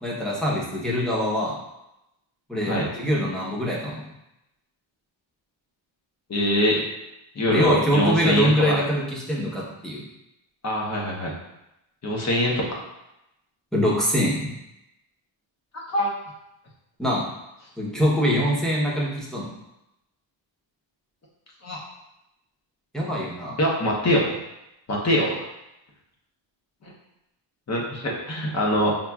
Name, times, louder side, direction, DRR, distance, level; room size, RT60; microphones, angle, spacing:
voice 1, 0.0-1.5 2.5-4.0 7.5-10.0 13.7-14.5 17.0-17.2 17.8-19.5 22.9-23.6, equal, ahead, -6 dB, 0.8 m, -24 dB
voice 2, 6.3-6.9 7.3-8.8 10.6-11.3 12.0-12.7 15.7-16.1 21.6-21.8 23.6-24.3 24.9-25.5 26.8-26.9 27.7-29.0, equal, 35° left, -3 dB, 0.8 m, -23 dB
5.6 x 2.4 x 2.3 m, 0.89 s
wide cardioid pair, 145°, 47 cm